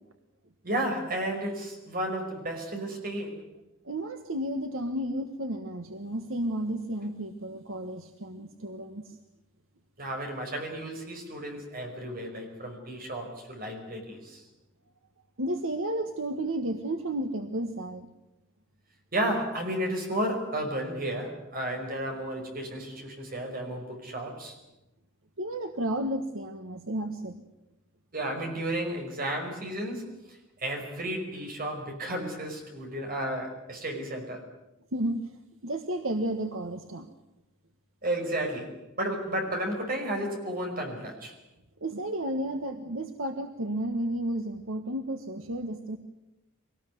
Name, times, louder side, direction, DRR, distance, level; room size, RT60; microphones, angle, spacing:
voice 1, 0.6-3.4 10.0-14.4 19.1-24.6 28.1-34.5 38.0-41.4, right 1 dB, 45° right, 3 dB, 5.4 m, -33 dB
voice 2, 3.8-9.2 15.4-18.1 25.4-27.4 34.9-35.2 35.6-37.1 41.8-46.0, right 1 dB, 75° right, 6 dB, 1.5 m, -32 dB
24.0 x 19.0 x 9.4 m, 0.93 s
head